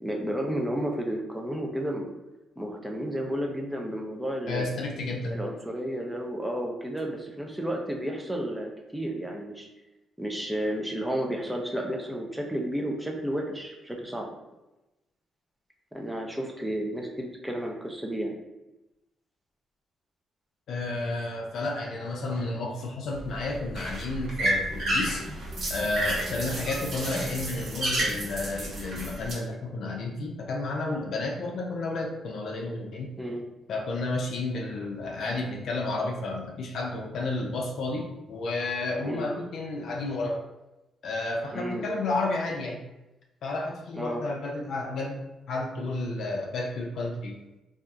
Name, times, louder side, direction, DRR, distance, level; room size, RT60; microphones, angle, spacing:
voice 1, 0.0-2.1 2.6-4.8 5.3-9.7 10.2-14.3 15.9-18.4 33.2-33.5 39.0-39.3 41.5-41.8 44.0-44.2, right 1 dB, 5° right, 1 dB, 0.5 m, -32 dB
voice 2, 4.5-5.4 20.7-25.3 25.7-33.1 33.7-40.4 41.0-42.8 43.4-45.2 45.5-47.4, left 2 dB, 70° left, 0 dB, 0.4 m, -31 dB
sound 1, 23.1-29.3, right 1 dB, 55° right, 0.9 m, -31 dB
2.7 x 2.4 x 2.3 m, 0.98 s
cardioid pair, 90°, 0 cm